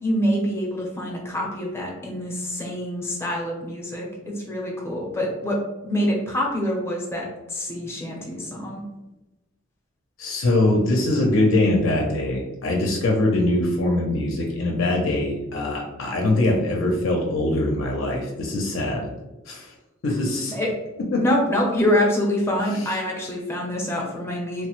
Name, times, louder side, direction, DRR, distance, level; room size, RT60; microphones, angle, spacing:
voice 1, 0.0-4.1 4.4-5.6 5.8-8.8 20.5-20.7 21.2-24.7, equal, 10° left, -2 dB, 0.6 m, -25 dB
voice 2, 10.2-19.1 19.5-19.7 20.0-20.6 21.1-21.2 22.8-22.9, left 1 dB, 65° left, 0 dB, 0.5 m, -22 dB
3.1 x 2.0 x 2.9 m, 1.0 s
head